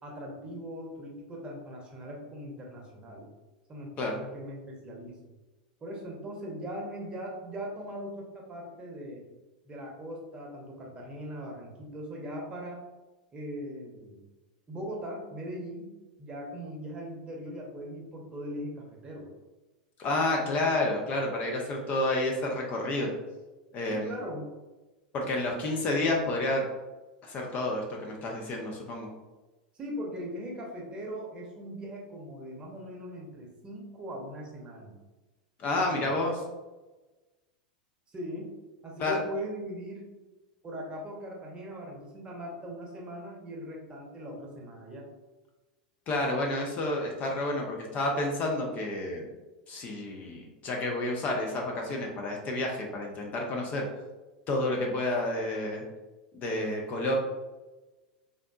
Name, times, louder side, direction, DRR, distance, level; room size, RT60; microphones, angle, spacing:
voice 1, 0.0-3.3 3.7-5.2 5.8-9.2 9.6-12.8 13.3-14.2 14.7-15.9 16.2-19.3 23.9-24.5 29.7-35.0 35.9-36.1 38.1-38.5 38.8-40.1 40.6-45.1, equal, 25° right, -1 dB, 0.9 m, -40 dB
voice 2, 20.0-23.1 23.7-24.2 25.1-26.6 27.2-29.1 35.6-36.4 39.0-39.2 46.1-49.3 49.7-53.9 54.5-55.8 56.3-57.2, left 2 dB, 35° left, 1 dB, 0.6 m, -30 dB
3.5 x 2.6 x 2.3 m, 1.1 s
figure-of-eight pair, 90°, 4 cm